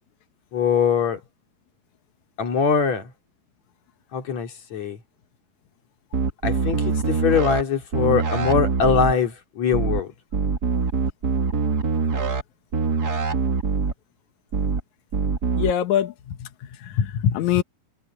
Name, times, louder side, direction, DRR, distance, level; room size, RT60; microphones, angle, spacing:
voice 1, 0.5-1.2 2.4-3.1 4.1-5.0 6.4-10.1, left 6 dB, 45° left, 3.8 m, -22 dB
sound 1, 6.1-7.6 7.9-9.1 9.7-10.0 10.3-12.4 12.7-13.9 14.5-14.8 15.1-15.7, right 5 dB, 55° right, 1.0 m, -23 dB
voice 2, 15.6-16.5 16.8-17.6, left 9 dB, 65° left, 1.9 m, -23 dB
omnidirectional pair, 4.7 m